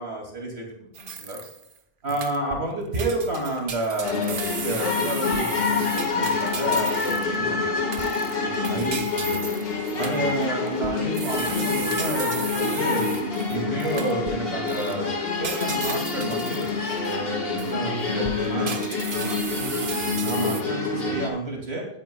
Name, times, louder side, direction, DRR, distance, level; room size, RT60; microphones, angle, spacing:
voice 1, 0.0-1.4 2.0-7.8 8.6-9.4 9.9-13.1 13.5-18.8 20.2-21.9, right 1 dB, 80° right, -1 dB, 2.8 m, -30 dB
sound 1, 1.0-1.7 2.1-2.7 2.9-7.4 7.9-14.4 14.7-14.9 15.4-17.2 17.6-17.7 18.2-20.6, right 5 dB, 55° right, 1.1 m, -35 dB
sound 2, 4.0-21.3, left 4 dB, 65° left, 2.0 m, -27 dB
voice 2, 17.8-18.8 19.1-20.6 21.0-21.2, right 1 dB, 20° right, -3 dB, 5.0 m, -36 dB
18.5 x 9.1 x 2.3 m, 0.76 s
omnidirectional pair, 1.1 m